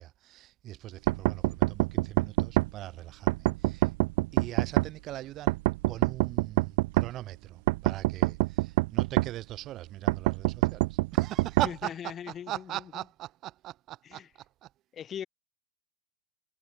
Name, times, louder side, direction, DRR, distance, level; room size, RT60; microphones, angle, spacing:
voice 1, 0.0-3.9 4.3-5.6 5.9-11.9 12.3-14.2 14.6-14.7, right 14 dB, 35° right, 4.2 m, -40 dB
sound 1, 1.1-2.7 3.3-4.9 5.5-7.1 7.7-9.3 10.1-11.7, right 22 dB, 50° right, 0.3 m, -25 dB
voice 2, 11.6-13.0 14.0-14.3 14.9-15.3, left 9 dB, 25° left, 2.8 m, -40 dB
figure-of-eight pair, 90°, 0 cm